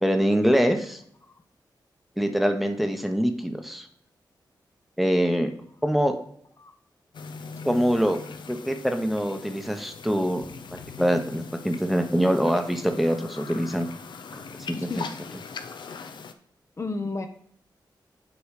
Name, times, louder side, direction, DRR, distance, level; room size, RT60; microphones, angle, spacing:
voice 1, 0.0-1.0 2.2-3.9 5.0-5.5 5.8-6.2 7.6-8.2 8.5-10.4 10.7-13.9 14.3-14.4 14.7-15.0, equal, ahead, 6 dB, 0.8 m, -24 dB
sound 1, 7.1-16.3, left 5 dB, 70° left, 0.6 m, -41 dB
voice 2, 16.8-17.3, left 3 dB, 35° left, 6 dB, 0.7 m, -31 dB
8.2 x 3.1 x 4.9 m, 0.65 s
cardioid pair, 65°, 8 cm